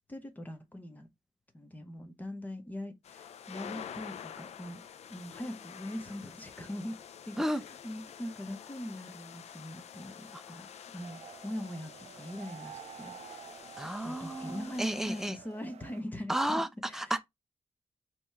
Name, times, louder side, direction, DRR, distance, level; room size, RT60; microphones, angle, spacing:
voice 1, 0.1-1.1 1.5-4.8 5.1-7.0 7.3-10.7 10.9-13.4 14.0-17.1, left 1 dB, 15° left, 1.0 m, -42 dB
sound 1, 3.0-15.3, left 8 dB, 90° left, 0.4 m, -48 dB
sound 2, 11.0-16.0, right 9 dB, 80° right, 0.4 m, -50 dB
voice 2, 13.8-15.4 16.3-16.7 16.9-17.2, right 1 dB, 5° right, 0.4 m, -32 dB
5.2 x 3.0 x 3.4 m
wide cardioid pair, 145°, 11 cm